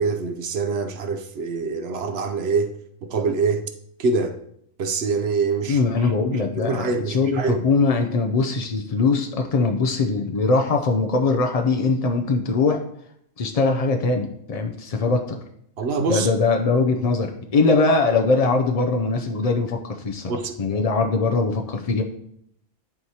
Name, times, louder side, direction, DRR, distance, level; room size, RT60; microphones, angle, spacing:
voice 1, 0.0-2.7 3.0-3.6 4.0-4.4 4.8-7.7 15.8-16.3 20.3-20.5, right 4 dB, 60° right, 0.7 m, -25 dB
voice 2, 5.7-6.9 7.1-12.8 13.4-15.4 16.1-20.3 20.6-22.0, left 3 dB, 60° left, 0.3 m, -21 dB
11.0 x 4.6 x 2.8 m
omnidirectional pair, 1.4 m